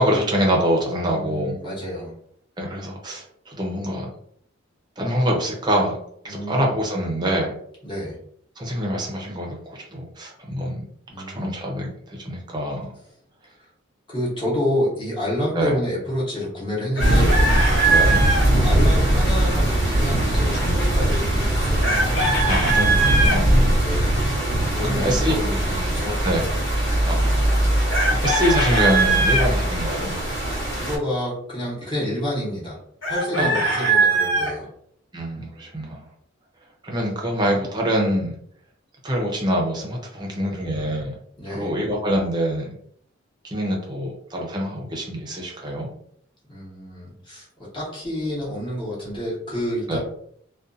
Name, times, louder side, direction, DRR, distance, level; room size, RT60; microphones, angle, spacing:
voice 1, 0.0-1.6 2.6-4.1 5.0-6.0 6.2-7.5 8.6-10.9 11.3-12.9 15.5-15.8 17.9-18.3 21.1-21.2 22.4-23.6 24.8-25.4 26.2-26.5 27.0-27.7 28.2-30.2 33.4-33.6 35.1-36.1 36.8-38.3 39.0-41.2 41.5-42.8 43.4-45.9 49.9-50.0, equal, 20° right, -1 dB, 0.6 m, -25 dB
voice 2, 1.1-2.1 6.3-6.7 7.8-8.2 11.1-11.6 14.1-17.4 18.5-21.9 23.7-24.1 24.7-26.2 30.7-32.8 33.1-34.7 40.1-40.5 41.4-41.7 46.5-50.0, left 1 dB, 25° left, -7 dB, 1.0 m, -28 dB
Chicken rooster, 17.0-18.5 21.8-23.4 27.9-29.5 33.0-34.5, right 3 dB, 80° left, 1.5 m, -21 dB
sound 1, 17.0-31.0, right 1 dB, 65° left, 1.1 m, -21 dB
2.5 x 2.3 x 2.5 m, 0.66 s
head